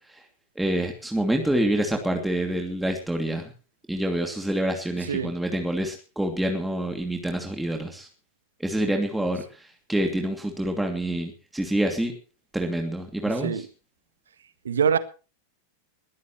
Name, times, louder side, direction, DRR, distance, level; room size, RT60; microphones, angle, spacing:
voice 1, 0.6-3.5 3.9-8.1 8.6-12.1 12.5-13.6, right 1 dB, 5° right, 2.7 m, -27 dB
voice 2, 14.7-15.0, right 7 dB, 65° right, 1.7 m, -23 dB
21.0 x 15.5 x 3.2 m
figure-of-eight pair, 90°, 0 cm